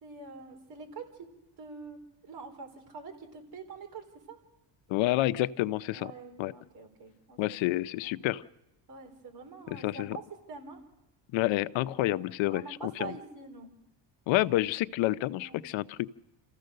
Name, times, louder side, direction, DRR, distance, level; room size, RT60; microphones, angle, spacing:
voice 1, 0.0-1.3 1.6-2.0 2.2-4.4 5.9-7.4 8.0-8.2 8.9-10.2 10.5-10.8 12.1-12.2 12.5-13.7 15.4-15.7, right 4 dB, 55° right, 4 dB, 4.2 m, -45 dB
voice 2, 4.9-6.1 6.4-6.5 7.4-8.4 9.7-10.2 11.3-13.1 14.3-16.1, left 16 dB, 85° left, 15 dB, 0.7 m, -29 dB
28.0 x 15.0 x 6.6 m, 0.88 s
cardioid pair, 130°, 45 cm